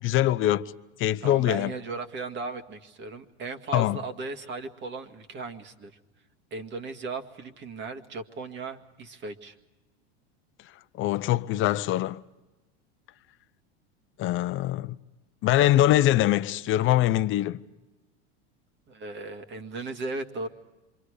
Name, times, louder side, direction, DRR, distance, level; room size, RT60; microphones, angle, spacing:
voice 1, 0.0-0.7 1.0-1.7 3.7-4.0 11.0-12.2 14.2-15.0 15.4-17.6, left 14 dB, 40° left, 0.8 m, -23 dB
voice 2, 1.2-5.9 6.5-9.6 18.9-20.5, right 3 dB, 35° right, 2.0 m, -36 dB
27.5 x 25.0 x 4.9 m
supercardioid pair, 125°, 33 cm